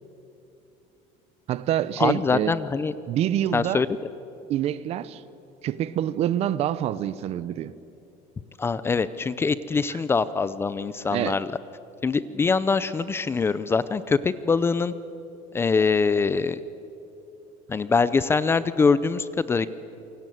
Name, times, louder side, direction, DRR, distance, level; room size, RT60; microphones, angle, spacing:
voice 1, 1.5-2.5 3.1-3.8 4.5-5.2 5.6-7.7 9.9-10.0 11.1-11.4, right 11 dB, 40° right, 17 dB, 0.8 m, -26 dB
voice 2, 2.0-2.9 3.5-3.9 8.6-11.5 12.0-14.9 15.5-16.6 17.7-19.7, left 4 dB, 15° left, 15 dB, 0.5 m, -23 dB
27.5 x 23.5 x 9.3 m, 2.8 s
cardioid pair, 170°, 16 cm